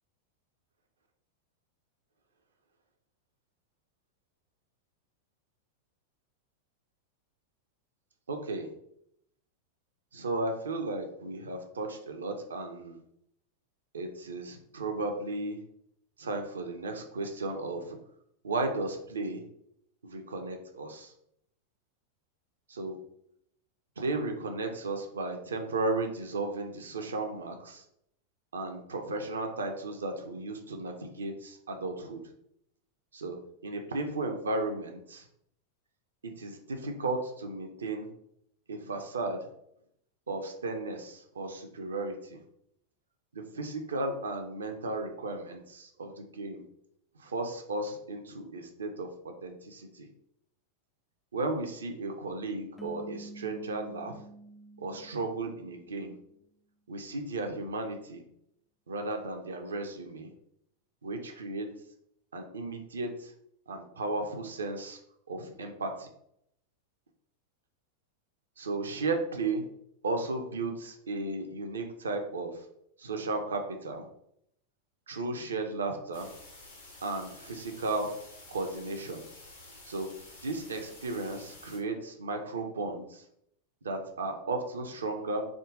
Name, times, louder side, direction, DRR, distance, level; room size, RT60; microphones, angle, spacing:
voice 1, 8.3-8.7 10.1-13.0 13.9-15.6 16.2-18.0 18.4-19.4 20.0-21.1 22.7-23.0 24.0-27.8 28.5-32.2 33.1-33.4 33.6-35.3 36.2-38.1 38.7-39.5 40.3-42.4 43.3-46.6 47.2-50.1 51.3-54.2 54.8-56.2 56.9-58.2 58.9-60.3 61.0-61.7 62.3-63.3 63.7-65.0 65.3-66.1 68.6-69.6 70.0-72.7 73.0-74.0 75.1-76.3 77.0-78.1 78.5-79.2 79.9-80.1 80.4-83.2 83.8-85.4, right 2 dB, 70° right, 5 dB, 0.5 m, -35 dB
sound 1, 52.8-56.1, right 2 dB, 5° left, 0.3 m, -48 dB
sound 2, 76.1-81.8, left 2 dB, 75° left, 0.9 m, -51 dB
3.7 x 2.2 x 3.6 m, 0.74 s
figure-of-eight pair, 90°, 0 cm